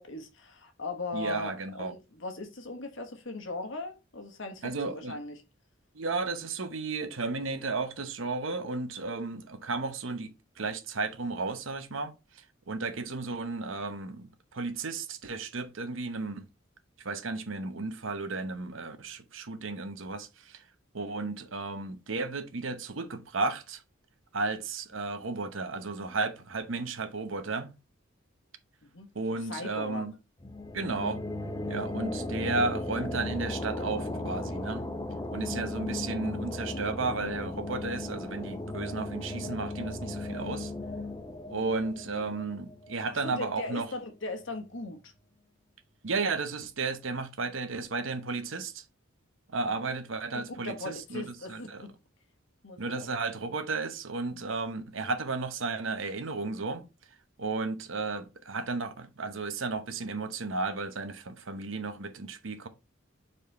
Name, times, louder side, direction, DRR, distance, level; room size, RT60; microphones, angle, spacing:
voice 1, 0.0-5.3 28.8-29.1 29.5-30.0 31.6-31.9 43.2-45.0 50.6-51.9 52.6-53.1 54.3-54.5, left 2 dB, 65° left, 1.4 m, -39 dB
voice 2, 1.1-1.9 4.6-5.2 5.9-16.5 17.0-20.6 20.9-23.8 24.3-27.7 29.1-30.1 30.7-31.2 31.7-34.9 35.3-40.7 41.5-43.9 46.0-48.8 49.5-51.9 52.8-56.9 57.4-62.7, right 3 dB, 70° right, 1.0 m, -34 dB
sound 1, 30.4-43.8, left 2 dB, 20° left, 0.6 m, -36 dB
5.3 x 4.3 x 4.2 m
head